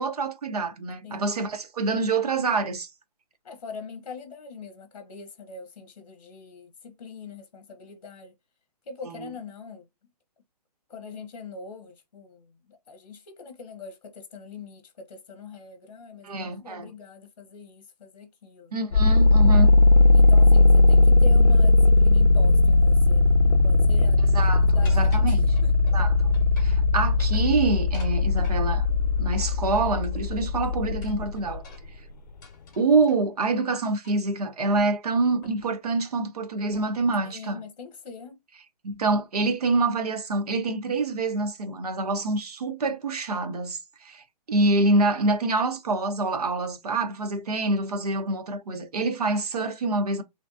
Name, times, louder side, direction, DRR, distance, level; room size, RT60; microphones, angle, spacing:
voice 1, 0.0-2.9 16.2-16.9 18.7-19.7 24.3-25.4 25.9-26.1 26.6-28.9 29.2-31.6 32.8-37.6 38.8-50.2, right 3 dB, 70° right, 1.1 m, -26 dB
voice 2, 3.4-8.3 8.9-9.9 10.9-18.7 20.1-26.0 37.2-38.4, left 5 dB, 55° left, 0.9 m, -42 dB
sound 1, 18.9-31.6, left 2 dB, 85° left, 0.5 m, -18 dB
sound 2, 24.8-26.0 26.3-26.8 27.1-28.6 29.4-30.4 31.0-33.2 34.0-34.3 34.7-34.8 35.4-35.7 36.0-36.2 36.7-37.0, left 2 dB, 30° left, 1.4 m, -50 dB
3.4 x 3.1 x 2.6 m
hypercardioid pair, 175°, 21 cm